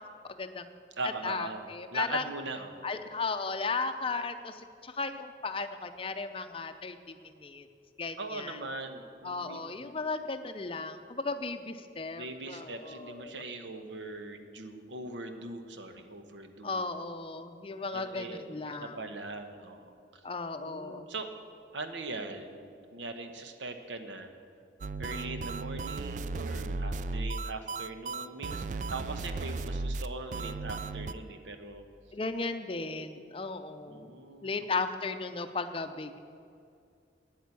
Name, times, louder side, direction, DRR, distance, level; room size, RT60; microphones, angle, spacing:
voice 1, 0.4-0.8 1.0-2.2 2.8-7.7 8.0-8.6 9.2-13.4 16.6-19.0 20.2-21.0 32.1-34.1 34.4-36.2, left 4 dB, 30° left, 9 dB, 0.6 m, -35 dB
voice 2, 1.0-2.9 8.2-9.9 12.2-16.8 17.9-20.2 20.6-21.3 21.7-24.3 25.0-31.8 33.9-34.5, right 3 dB, 90° right, 7 dB, 1.1 m, -41 dB
sound 1, 24.8-31.1, right 3 dB, 45° right, 0.3 m, -35 dB
9.4 x 8.9 x 8.3 m, 2.4 s
head